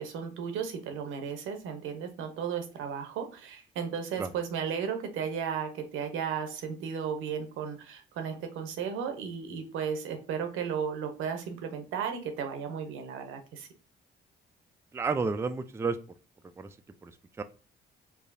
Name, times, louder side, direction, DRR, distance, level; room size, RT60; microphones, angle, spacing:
voice 1, 0.0-13.7, right 7 dB, 90° right, 6 dB, 0.8 m, -34 dB
voice 2, 14.9-16.0 16.6-16.7 17.0-17.1 17.4-17.5, right 4 dB, 15° right, 9 dB, 0.3 m, -30 dB
4.8 x 2.7 x 2.6 m, 0.36 s
cardioid pair, 90°, 20 cm